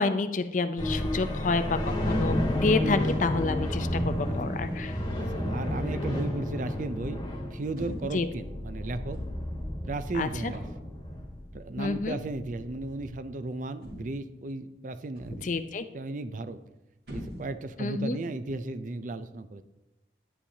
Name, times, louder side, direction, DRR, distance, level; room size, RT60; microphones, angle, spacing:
voice 1, 0.0-4.9 8.1-8.3 10.1-10.5 11.8-12.2 15.4-15.8 17.8-18.2, left 3 dB, 45° left, 10 dB, 0.5 m, -29 dB
sound 1, 0.8-13.2, left 1 dB, 25° left, 1.4 m, -31 dB
voice 2, 5.2-9.2 9.8-10.6 11.5-15.5 15.9-16.6 17.1-19.6, right 2 dB, 45° right, 11 dB, 0.4 m, -35 dB
sound 2, 7.8-8.2 9.1-9.5 10.5-11.0 12.1-12.3 13.8-14.3 15.2-15.7 17.1-17.8, equal, 70° right, 2.9 m, -42 dB
9.9 x 9.9 x 2.8 m, 0.98 s
head